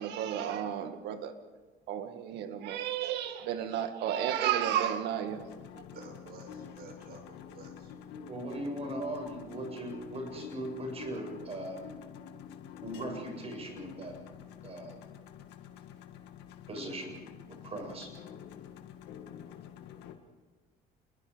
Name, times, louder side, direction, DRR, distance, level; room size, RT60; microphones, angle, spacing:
voice 1, 0.0-1.3 1.9-5.4 5.7-5.8, right 10 dB, 85° right, 1.9 m, -32 dB
sound 1, 5.3-20.1, left 8 dB, 85° left, 2.0 m, -48 dB
voice 2, 5.8-8.0, right 4 dB, 65° right, 7.1 m, -51 dB
voice 3, 8.3-11.8 12.8-14.2 14.6-15.0 16.7-18.1, right 1 dB, 35° right, 7.8 m, -39 dB
28.5 x 21.5 x 5.2 m
cardioid pair, 110°, 17 cm